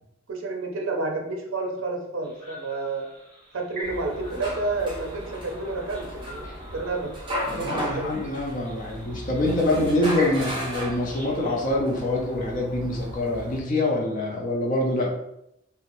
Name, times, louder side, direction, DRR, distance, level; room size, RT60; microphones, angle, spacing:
voice 1, 0.3-3.1 3.5-7.1 7.5-8.1, right 3 dB, 75° right, 2 dB, 0.5 m, -30 dB
sound 1, 2.2-11.7, equal, 5° left, 1.3 m, -44 dB
sound 2, 3.8-13.6, equal, 25° right, 0.6 m, -35 dB
voice 2, 7.4-15.1, left 1 dB, 40° left, -1 dB, 0.5 m, -25 dB
3.0 x 2.1 x 2.5 m, 0.82 s
head